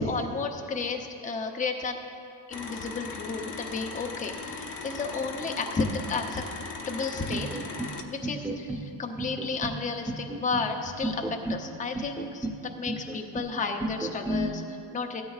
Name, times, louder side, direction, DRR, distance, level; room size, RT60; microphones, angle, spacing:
voice 1, 0.0-2.0 2.5-6.4 6.9-7.5 8.1-15.2, left 4 dB, 20° left, 4 dB, 0.6 m, -32 dB
sound 1, 2.5-8.0, left 4 dB, 45° left, 0.9 m, -38 dB
sound 2, 7.3-7.9 8.2-8.8 9.2-9.8 10.1-10.7 11.0-11.6 11.9-12.6 12.9-13.5 13.8-14.5, right 1 dB, 5° right, 0.9 m, -32 dB
16.5 x 13.0 x 2.4 m, 2.7 s
cardioid pair, 145°, 42 cm